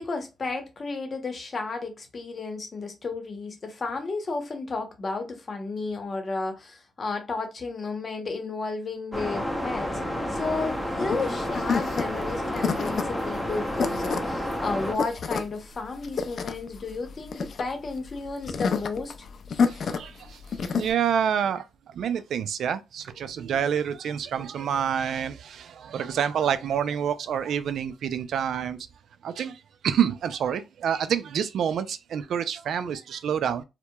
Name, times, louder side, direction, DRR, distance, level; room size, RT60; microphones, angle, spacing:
voice 1, 0.0-19.1, left 3 dB, 40° left, 0.8 m, -33 dB
sound 1, 9.1-14.9, left 1 dB, 5° left, 0.6 m, -30 dB
sound 2, 10.3-20.9, left 5 dB, 55° left, 0.3 m, -30 dB
voice 2, 19.7-20.4 20.7-28.8 29.2-33.6, right 8 dB, 70° right, 0.3 m, -28 dB
2.8 x 2.1 x 2.2 m
cardioid pair, 80°, 0 cm